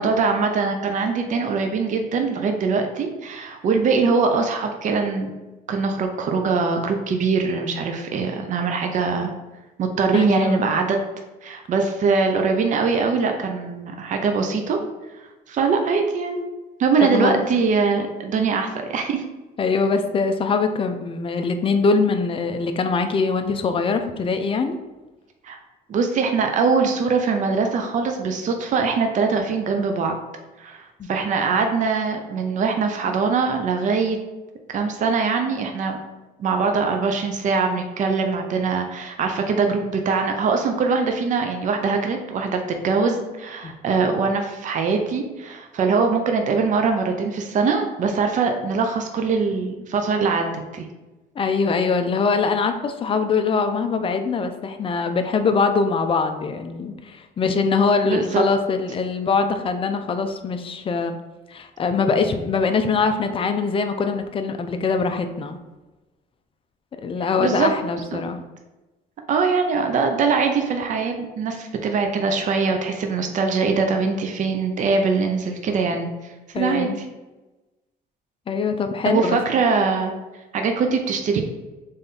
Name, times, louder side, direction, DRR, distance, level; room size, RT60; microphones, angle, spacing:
voice 1, 0.0-5.3 5.7-9.3 9.8-11.0 11.4-14.8 15.5-16.5 16.8-19.2 25.4-25.6 25.9-30.2 30.6-34.2 34.7-36.0 36.4-50.9 58.0-58.5 67.4-67.7 68.1-68.2 69.3-76.9 79.0-80.1 80.5-81.4, right 4 dB, 50° right, 4 dB, 0.6 m, -22 dB
voice 2, 10.1-10.7 17.0-17.4 19.6-24.8 31.0-31.1 31.5-31.6 43.6-43.7 51.4-61.2 61.5-65.6 67.0-68.4 76.5-77.0 78.5-79.4, left 4 dB, 30° left, 7 dB, 0.5 m, -23 dB
3.7 x 3.4 x 4.1 m, 1.1 s
cardioid pair, 110°, 17 cm